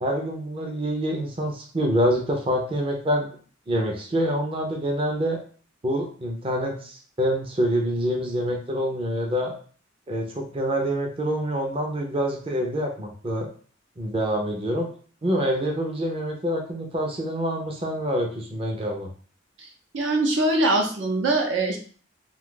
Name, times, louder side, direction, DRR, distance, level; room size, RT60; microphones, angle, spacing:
voice 1, 0.0-3.4 3.7-5.4 5.8-9.5 10.1-13.5 14.0-14.9 15.2-19.1, equal, 30° right, 0 dB, 0.5 m, -26 dB
voice 2, 19.9-21.8, right 2 dB, 70° right, 2 dB, 0.7 m, -22 dB
2.6 x 2.3 x 3.7 m, 0.42 s
head